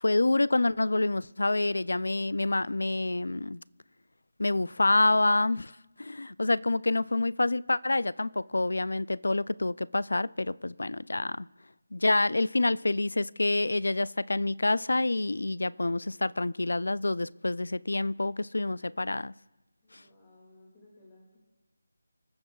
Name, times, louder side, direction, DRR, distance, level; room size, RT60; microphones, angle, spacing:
voice 1, 0.0-3.6 4.4-5.7 6.0-11.5 11.9-19.3, left 2 dB, 85° left, 0.4 m, -27 dB
voice 2, 19.8-21.4, left 2 dB, 15° left, 2.2 m, -58 dB
27.5 x 14.0 x 2.3 m
figure-of-eight pair, 175°, 0 cm